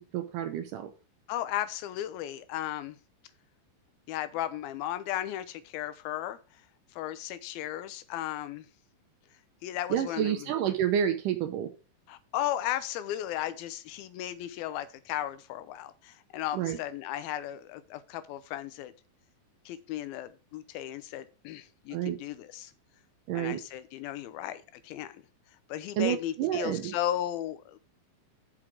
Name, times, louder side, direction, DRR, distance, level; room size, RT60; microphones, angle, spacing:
voice 1, 0.1-0.9 9.9-11.7 16.5-16.8 21.9-22.2 23.3-23.6 26.0-26.9, right 10 dB, 75° right, 8 dB, 2.0 m, -29 dB
voice 2, 1.3-3.0 4.1-6.4 6.9-8.7 9.6-10.5 12.1-18.9 19.7-22.7 23.3-25.2 25.7-27.8, left 12 dB, 85° left, 13 dB, 2.5 m, -35 dB
6.0 x 5.9 x 6.3 m, 0.34 s
omnidirectional pair, 4.3 m